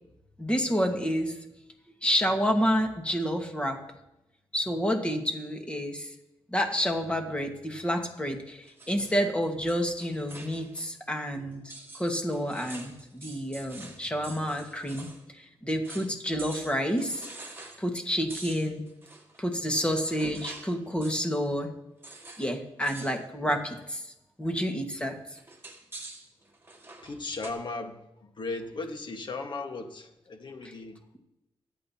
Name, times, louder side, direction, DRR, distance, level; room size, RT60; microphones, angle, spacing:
voice 1, 0.4-1.3 2.0-3.8 4.5-6.1 6.5-11.6 11.9-15.1 15.3-17.2 17.8-18.8 19.4-21.7 22.4-24.0 24.4-25.2, equal, 10° left, 3 dB, 1.7 m, -29 dB
sound 1, 8.6-10.9 11.2-11.3 11.7-15.2 15.5-15.6 15.8-16.1 16.4-17.8 18.3-20.8 21.0-21.4 22.0-22.5 22.8-23.2 23.5-23.9 25.4-27.5, right 2 dB, 25° right, 1.9 m, -46 dB
voice 2, 27.0-28.0 28.4-31.2, left 3 dB, 50° left, 4 dB, 1.6 m, -36 dB
24.0 x 8.9 x 2.9 m, 0.91 s
wide cardioid pair, 105°, 10 cm